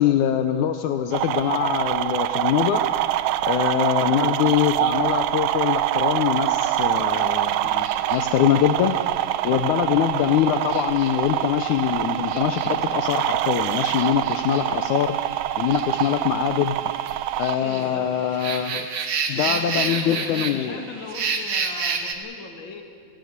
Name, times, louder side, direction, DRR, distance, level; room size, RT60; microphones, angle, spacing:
voice 1, 0.0-2.8 3.4-9.0 9.4-15.2 15.6-16.8 17.4-18.9 19.3-20.8, left 10 dB, 75° left, 8 dB, 2.1 m, -23 dB
sound 1, 1.1-17.6, right 13 dB, 85° right, 2.2 m, -25 dB
sound 2, 7.1-22.1, right 5 dB, 60° right, 2.7 m, -33 dB
voice 2, 17.6-18.1 19.3-22.8, left 5 dB, 40° left, 4 dB, 2.5 m, -38 dB
25.5 x 17.0 x 8.1 m, 2.5 s
omnidirectional pair, 3.6 m